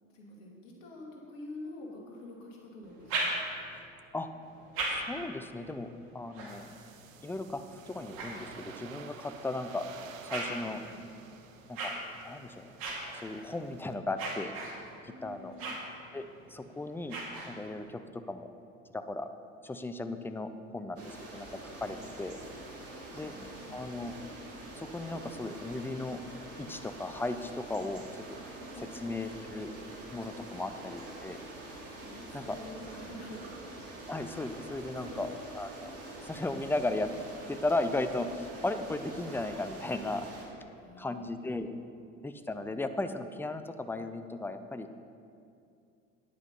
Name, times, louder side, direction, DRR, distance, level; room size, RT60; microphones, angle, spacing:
voice 1, 0.1-3.4 10.3-11.0 15.1-15.8 23.2-24.0 28.5-29.0 30.5-30.7 32.0-33.4 34.9-35.4 40.8-41.6, left 1 dB, 70° left, -2 dB, 2.5 m, -47 dB
sound 1, 2.8-3.8 4.4-9.0 9.6-17.9, right 2 dB, 60° right, 2.5 m, -40 dB
voice 2, 4.9-6.7 7.2-9.9 10.2-10.8 11.7-11.9 12.2-12.8 13.2-14.5 15.0-15.5 16.1-16.2 16.5-18.5 18.9-19.3 19.6-22.4 23.1-23.3 23.7-24.1 24.8-26.2 26.6-28.4 28.9-29.7 30.1-31.4 32.3-32.5 34.1-35.3 35.6-35.9 36.2-37.1 37.5-40.3 41.0-41.8 42.2-44.9, left 2 dB, 5° left, 9 dB, 0.5 m, -36 dB
sound 2, 6.5-14.0, right 7 dB, 85° right, 0.7 m, -52 dB
sound 3, 21.0-40.4, right 2 dB, 35° right, 2.7 m, -46 dB
9.6 x 8.3 x 5.4 m, 2.5 s
hypercardioid pair, 75°, 39 cm